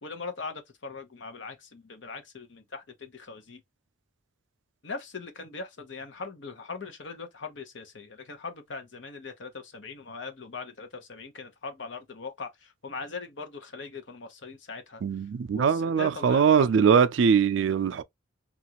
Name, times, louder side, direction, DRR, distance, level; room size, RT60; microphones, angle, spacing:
voice 1, 0.0-3.6 4.8-16.8, left 4 dB, 70° left, 0.8 m, -40 dB
voice 2, 15.0-18.0, right 6 dB, 75° right, 0.3 m, -22 dB
3.0 x 2.5 x 2.9 m
head